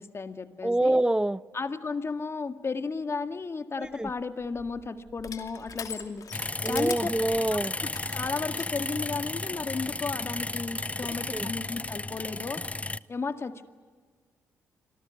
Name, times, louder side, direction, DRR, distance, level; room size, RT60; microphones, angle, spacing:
voice 1, 0.0-1.0 1.5-6.3 6.6-7.1 7.5-7.6 8.1-12.6 13.1-13.7, left 4 dB, 35° left, 9 dB, 2.0 m, -34 dB
voice 2, 0.6-1.4 3.8-4.1 6.6-7.7 11.3-11.5, right 1 dB, 10° right, 17 dB, 0.9 m, -26 dB
Crushing, 3.8-8.7, left 7 dB, 55° left, 2.5 m, -43 dB
sound 1, 6.3-13.0, left 2 dB, 20° left, 0.7 m, -34 dB
26.0 x 19.0 x 9.5 m, 1.5 s
hypercardioid pair, 45°, 7 cm